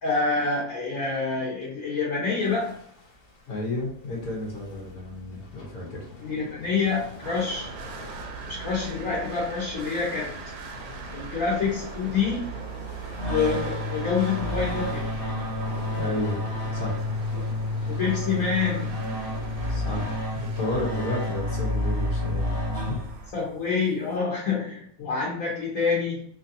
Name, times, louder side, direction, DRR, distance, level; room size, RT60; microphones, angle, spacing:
voice 1, 0.0-2.7 6.2-7.7 8.5-10.3 11.1-12.4 13.3-15.0 17.9-18.9 23.3-26.2, left 5 dB, 65° left, -6 dB, 1.4 m, -27 dB
sound 1, 2.4-20.2, left 3 dB, 50° left, 0.8 m, -44 dB
voice 2, 3.5-6.0 15.9-16.4 16.7-17.0 19.7-22.6 22.9-23.0 25.0-25.1, left 1 dB, 80° left, -2 dB, 1.5 m, -32 dB
sound 2, 7.2-23.3, right 6 dB, 80° right, 1.0 m, -41 dB
sound 3, 13.2-23.4, left 1 dB, 30° left, 0.9 m, -29 dB
3.0 x 2.7 x 2.7 m, 0.63 s
omnidirectional pair, 1.5 m